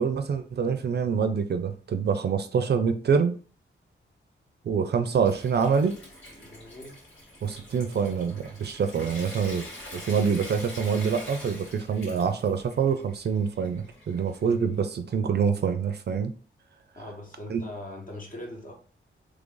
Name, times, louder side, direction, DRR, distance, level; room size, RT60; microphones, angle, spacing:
voice 1, 0.0-3.3 4.7-5.9 7.4-9.7 9.9-16.3 17.5-17.6, right 6 dB, 55° right, 0.4 m, -26 dB
Water tap faucet / Sink (filling or washing) / Trickle dribble, 4.8-14.7, left 1 dB, 80° left, 2.0 m, -45 dB
voice 2, 6.4-7.0 17.0-18.7, left 1 dB, 40° left, 1.1 m, -41 dB
3.2 x 2.5 x 3.7 m
wide cardioid pair, 120°, 21 cm